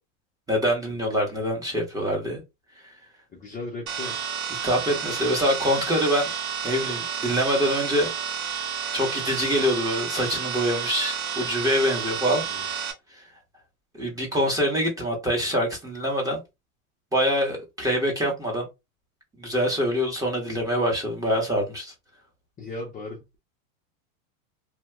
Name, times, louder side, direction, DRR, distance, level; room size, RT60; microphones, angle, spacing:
voice 1, 0.5-2.4 4.6-6.3 6.6-8.1 8.9-12.4 14.0-16.4 17.1-18.7 19.4-21.9, equal, 10° right, 0.9 m, -25 dB
voice 2, 3.3-4.3 12.4-12.7 22.6-23.4, left 2 dB, 20° left, 0.6 m, -37 dB
sound 1, 3.9-12.9, right 7 dB, 85° right, 1.1 m, -31 dB
2.7 x 2.2 x 3.3 m
supercardioid pair, 140°, 42 cm